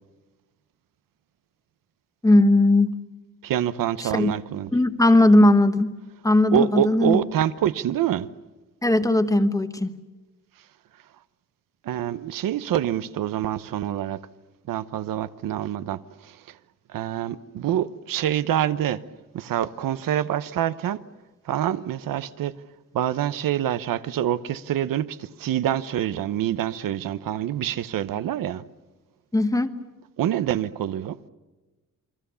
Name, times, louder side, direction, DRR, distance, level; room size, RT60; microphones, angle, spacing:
voice 1, 2.2-3.0 4.0-4.4 4.7-5.9 6.2-7.2 8.8-9.9 29.3-29.7, left 1 dB, 10° left, 1.2 m, -18 dB
voice 2, 3.4-4.7 6.5-8.3 11.8-14.2 14.7-16.6 16.9-19.0 19.3-21.0 21.5-22.5 22.9-28.6 30.2-31.2, right 11 dB, 85° right, 1.0 m, -26 dB
29.0 x 23.5 x 7.0 m
wide cardioid pair, 170°, 33 cm